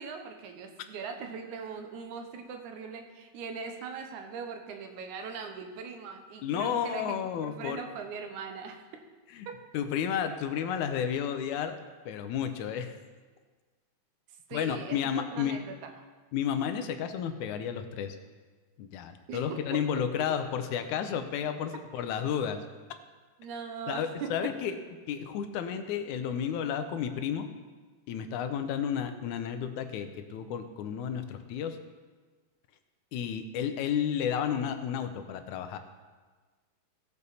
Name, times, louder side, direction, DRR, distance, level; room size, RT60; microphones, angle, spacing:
voice 1, 0.0-7.2 7.4-8.8 9.5-9.6 14.5-15.9 19.3-20.3 23.4-24.5, right 5 dB, 90° right, 5 dB, 2.4 m, -40 dB
voice 2, 6.4-7.8 9.3-9.5 9.7-11.8 12.1-12.9 14.5-15.6 16.3-18.2 18.8-22.6 23.9-24.8 25.1-27.5 28.1-31.8 33.1-35.8, left 8 dB, 85° left, 8 dB, 2.2 m, -32 dB
17.0 x 6.8 x 4.1 m, 1.4 s
omnidirectional pair, 3.4 m